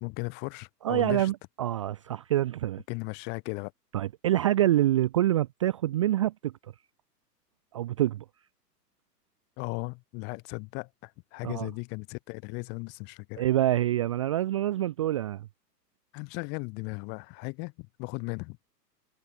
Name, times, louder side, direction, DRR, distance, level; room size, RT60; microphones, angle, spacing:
voice 1, 0.0-1.3 2.9-3.7 9.6-13.4 16.1-18.6, left 31 dB, 20° left, 0.8 m, -36 dB
voice 2, 0.8-2.8 3.9-6.5 7.7-8.2 11.4-11.7 13.4-15.5, right 13 dB, 20° right, 0.4 m, -26 dB
figure-of-eight pair, 105°, 49 cm